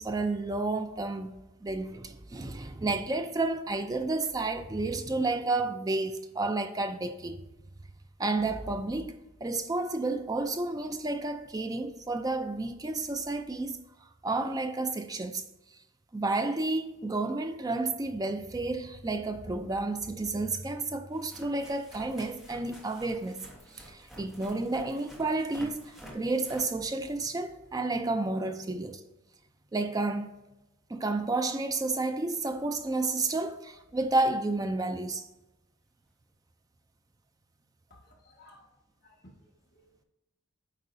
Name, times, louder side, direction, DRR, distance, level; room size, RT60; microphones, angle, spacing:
voice 1, 0.0-7.4 8.2-13.8 14.2-15.4 16.1-23.5 23.7-29.0 29.7-30.3 30.9-35.3, right 2 dB, 15° right, 0.3 m, -31 dB
sound 1, 21.1-27.5 32.6-32.7 33.7-33.8 34.0-34.2 36.0-36.1, equal, ahead, 1.0 m, -50 dB
voice 2, 37.9-38.7 39.0-40.0, left 1 dB, 45° left, 1.5 m, -58 dB
8.1 x 4.7 x 2.6 m
head